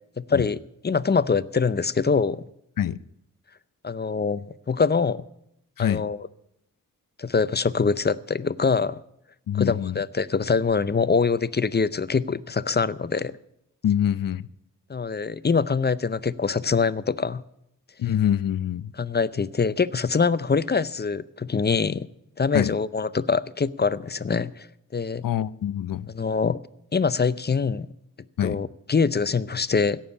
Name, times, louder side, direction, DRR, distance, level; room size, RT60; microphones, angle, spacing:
voice 1, 0.2-2.4 3.8-5.2 5.8-6.3 7.2-9.0 9.5-13.4 14.9-17.4 19.0-22.1 22.4-24.7 24.9-25.2 26.1-26.6 26.9-27.9 28.4-30.0, left 5 dB, 30° left, 0.6 m, -24 dB
voice 2, 9.5-10.0 13.8-14.5 18.0-18.9 22.5-22.7 25.2-26.1 28.4-28.6, left 10 dB, 80° left, 0.6 m, -25 dB
17.0 x 7.2 x 8.4 m
wide cardioid pair, 80°, 33 cm